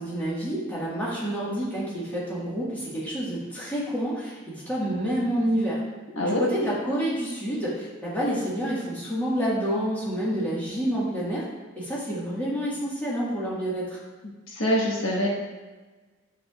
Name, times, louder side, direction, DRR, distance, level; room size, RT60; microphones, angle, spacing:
voice 1, 0.0-5.8 6.2-11.4 11.8-14.0, equal, 10° left, -8 dB, 1.7 m, -28 dB
voice 2, 6.1-6.5 14.5-15.3, equal, 80° left, -3 dB, 1.5 m, -24 dB
8.5 x 7.3 x 2.5 m, 1.3 s
head